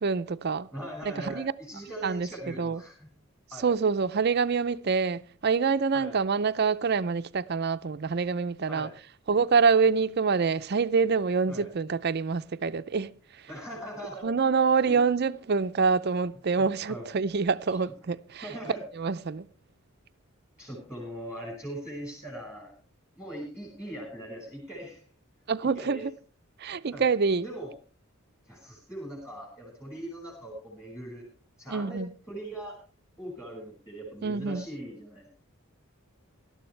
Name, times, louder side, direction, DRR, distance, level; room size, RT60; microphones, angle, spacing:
voice 1, 0.0-0.7 1.2-1.5 2.0-2.3 2.6-2.8 3.6-8.9 9.3-13.1 14.2-18.5 19.0-19.5 25.5-26.1 26.6-27.5 31.7-32.1 34.2-34.6, right 5 dB, 50° right, 0.5 m, -26 dB
voice 2, 0.7-3.1 3.5-3.7 5.9-6.1 8.7-8.9 11.5-11.6 13.5-14.3 14.9-15.0 16.5-17.0 18.4-18.9 20.6-22.7 23.2-25.0 25.6-26.0 26.9-27.0 27.4-27.7 28.5-31.3 31.6-32.8 33.2-35.3, right 1 dB, 15° left, 5.6 m, -40 dB
18.5 x 12.5 x 3.3 m
head